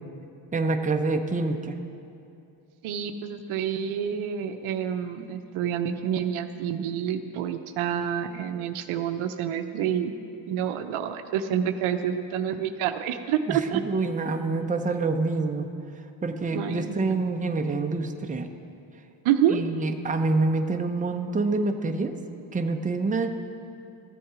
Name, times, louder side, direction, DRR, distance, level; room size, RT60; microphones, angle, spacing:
voice 1, 0.5-1.8 13.5-15.7 16.2-18.5 19.5-22.1 22.5-23.3, right 3 dB, 15° right, 5 dB, 0.7 m, -26 dB
voice 2, 2.8-10.1 10.5-13.8 16.5-16.9 19.2-19.6, right 9 dB, 75° right, 8 dB, 0.7 m, -28 dB
14.0 x 7.7 x 4.9 m, 2.6 s
supercardioid pair, 70°, 50 cm